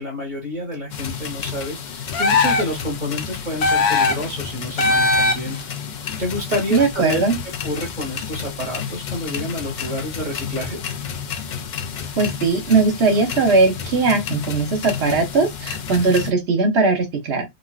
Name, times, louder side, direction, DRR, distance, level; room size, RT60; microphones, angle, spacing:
voice 1, 0.0-5.6 6.2-7.2 7.6-10.8, left 1 dB, 45° right, 1.3 m, -28 dB
sound 1, 0.9-16.3, left 7 dB, 55° left, 0.6 m, -31 dB
sound 2, 2.1-2.8 3.6-4.3 4.8-5.6, left 3 dB, 80° left, 0.9 m, -19 dB
voice 2, 6.7-7.4 12.2-17.4, right 3 dB, 85° right, 1.2 m, -19 dB
3.7 x 2.3 x 2.3 m
omnidirectional pair, 1.1 m